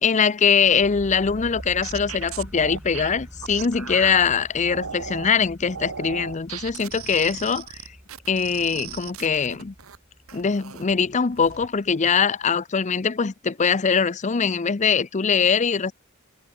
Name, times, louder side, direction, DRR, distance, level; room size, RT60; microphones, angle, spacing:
voice 1, 0.0-7.8 8.3-9.7 10.3-15.9, left 6 dB, 35° left, 0.6 m, -22 dB
sound 1, 0.7-12.5, equal, 5° right, 0.8 m, -44 dB
sound 2, 1.3-4.2 4.7-5.3 5.7-10.0 10.3-10.9 11.3-11.7, right 7 dB, 85° right, 1.3 m, -37 dB
head